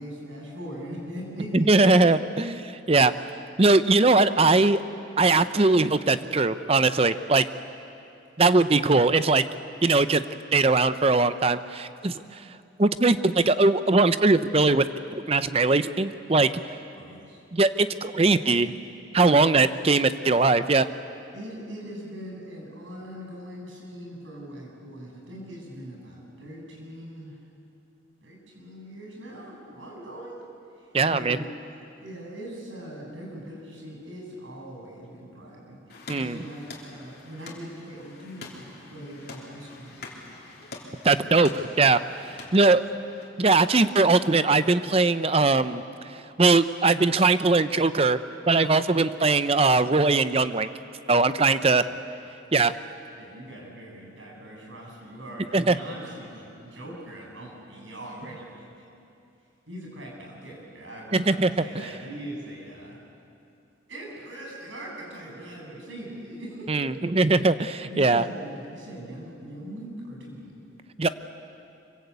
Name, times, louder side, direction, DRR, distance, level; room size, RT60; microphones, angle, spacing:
voice 1, 0.0-2.1 17.0-17.4 18.2-18.4 21.3-27.4 28.2-30.4 30.8-31.7 32.0-40.2 42.4-42.6 53.2-58.9 59.7-63.0 63.9-67.0 67.7-70.6, right 1 dB, 80° right, -1 dB, 7.1 m, -41 dB
voice 2, 1.5-3.1 3.6-4.8 5.2-7.4 8.4-9.4 9.8-10.2 10.5-12.4 12.8-14.9 15.1-16.5 17.5-18.7 19.1-20.9 30.9-31.4 36.1-36.4 41.0-42.0 42.5-42.8 43.4-45.8 46.4-48.2 48.5-50.7 51.1-51.8 52.5-52.7 55.5-55.7 61.1-61.5 66.7-68.2 71.0-71.1, right 3 dB, 30° right, 12 dB, 0.6 m, -20 dB
sound 1, 35.9-43.3, left 3 dB, 50° left, 3.5 m, -45 dB
25.5 x 23.5 x 8.3 m, 2.6 s
head